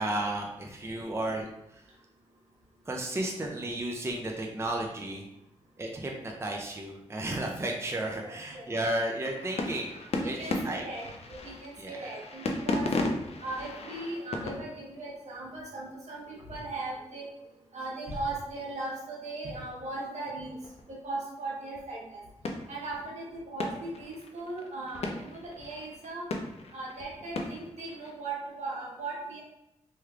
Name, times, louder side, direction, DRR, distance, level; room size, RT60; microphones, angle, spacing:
voice 1, 0.0-1.5 1.7-1.8 2.9-5.3 5.8-10.8 11.8-12.0, right 1 dB, 20° right, 1 dB, 0.5 m, -33 dB
voice 2, 8.2-8.7 9.4-9.6 9.9-11.0 11.3-12.9 13.4-17.3 17.7-20.6 20.9-22.2 22.7-26.3 26.7-29.4, right 2 dB, 70° right, -3 dB, 1.1 m, -38 dB
sound 1, 9.3-15.3 20.6-21.0 21.8-21.9 22.4-23.3 23.6-28.1, left 2 dB, 60° left, 0.5 m, -36 dB
3.1 x 3.1 x 2.4 m, 0.88 s
cardioid pair, 50°, 12 cm